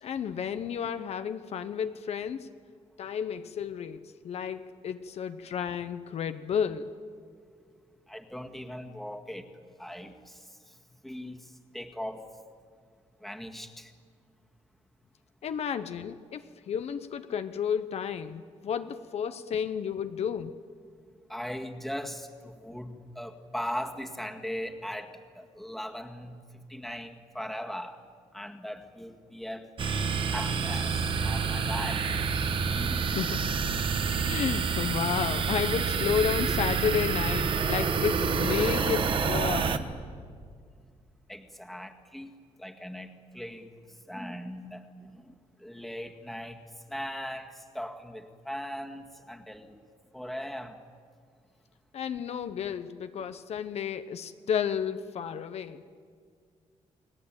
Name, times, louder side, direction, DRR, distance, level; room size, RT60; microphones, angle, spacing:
voice 1, 0.0-2.5 3.0-4.0 4.2-6.9 15.4-20.5 32.9-33.4 34.2-39.9 51.9-55.8, left 7 dB, 60° left, 10 dB, 0.9 m, -32 dB
voice 2, 8.1-9.5 9.8-10.4 11.0-12.3 13.2-13.9 21.3-28.0 28.3-32.1 32.7-33.1 41.3-42.3 42.6-43.7 44.1-45.3 45.6-46.6 46.9-49.8 50.1-50.8, equal, ahead, 4 dB, 1.9 m, -39 dB
sound 1, 29.8-39.8, right 5 dB, 45° right, 1.5 m, -28 dB
30.0 x 20.0 x 8.9 m, 2.1 s
cardioid pair, 140°, 12 cm